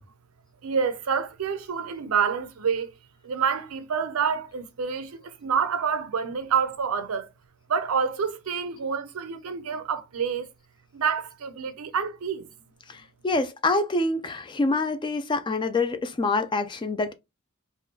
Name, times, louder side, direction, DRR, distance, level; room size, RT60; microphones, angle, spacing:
voice 1, 0.6-2.9 3.2-7.3 7.7-10.5 10.9-12.5, right 6 dB, 75° right, 0.5 m, -27 dB
voice 2, 12.9-17.1, left 3 dB, 20° left, 0.3 m, -26 dB
3.5 x 2.2 x 2.7 m
head